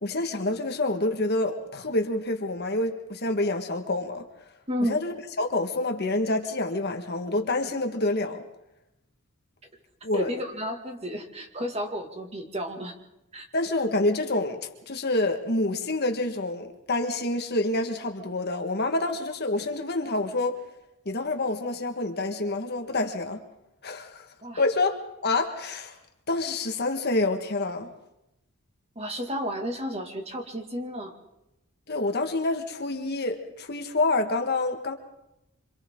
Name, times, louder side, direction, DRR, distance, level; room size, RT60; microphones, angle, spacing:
voice 1, 0.0-4.2 4.9-8.4 10.0-10.3 13.5-20.6 21.0-23.4 23.8-24.3 24.6-26.0 26.3-27.9 31.9-35.0, left 2 dB, 45° left, 1.7 m, -27 dB
voice 2, 4.7-5.0 10.1-12.9 13.3-13.5 24.4-24.6 29.0-31.1, equal, 30° right, 2.3 m, -32 dB
27.0 x 26.5 x 3.8 m
head